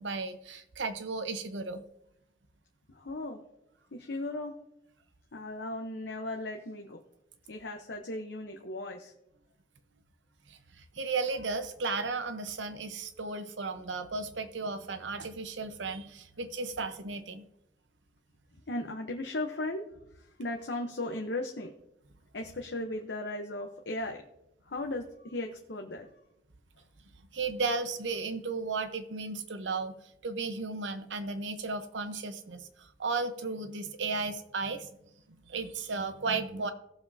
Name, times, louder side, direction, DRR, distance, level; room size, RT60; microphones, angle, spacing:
voice 1, 0.0-1.8 10.5-17.5 27.3-29.9 30.2-34.9 35.5-36.7, right 4 dB, 85° right, 10 dB, 0.9 m, -34 dB
voice 2, 2.9-3.4 3.9-4.6 5.3-7.0 7.5-9.1 18.7-21.7 22.3-24.2 24.6-26.1, left 2 dB, 65° left, 3 dB, 0.8 m, -37 dB
17.0 x 7.2 x 2.7 m, 0.83 s
head